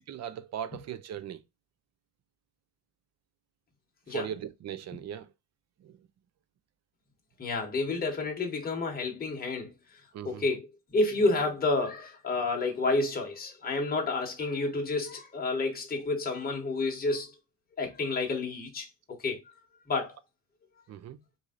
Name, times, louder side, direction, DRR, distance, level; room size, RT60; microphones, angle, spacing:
voice 1, 0.1-1.4 4.1-5.3 5.8-6.1 10.1-10.4 20.9-21.2, right 9 dB, 55° right, 0.5 m, -39 dB
voice 2, 7.4-9.7 10.2-17.3 17.8-19.4 19.9-20.1, left 3 dB, 25° left, 1.2 m, -30 dB
3.2 x 2.7 x 3.6 m
cardioid pair, 105°, 33 cm